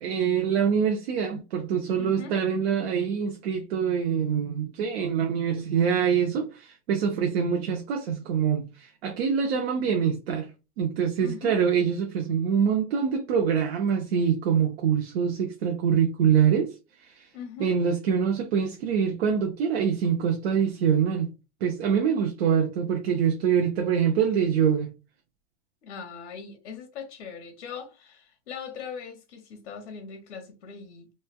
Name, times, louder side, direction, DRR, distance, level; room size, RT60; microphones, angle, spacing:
voice 1, 0.0-10.5 10.8-16.8 17.0-17.3 17.6-21.3 21.6-24.9, right 7 dB, 60° right, 0.6 m, -25 dB
voice 2, 2.0-2.4 11.2-11.6 17.3-17.8 25.8-31.1, left 6 dB, 80° left, 0.9 m, -40 dB
3.1 x 2.2 x 2.2 m
supercardioid pair, 155°, 35 cm